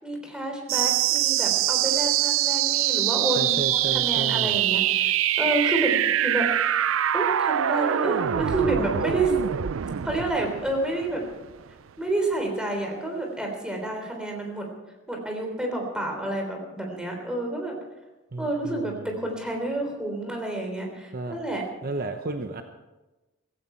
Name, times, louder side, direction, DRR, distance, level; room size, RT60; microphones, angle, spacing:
voice 1, 0.0-5.9 6.2-6.5 7.1-9.3 10.0-11.2 12.0-14.7 15.1-17.7 18.4-21.6, right 2 dB, 5° right, 2 dB, 3.4 m, -29 dB
sound 1, 0.7-11.7, right 11 dB, 70° right, 0.4 m, -24 dB
voice 2, 3.4-4.6 18.3-19.1 21.1-21.4 21.8-22.6, right 2 dB, 45° right, 6 dB, 0.9 m, -32 dB
16.5 x 16.0 x 4.5 m, 1.1 s
head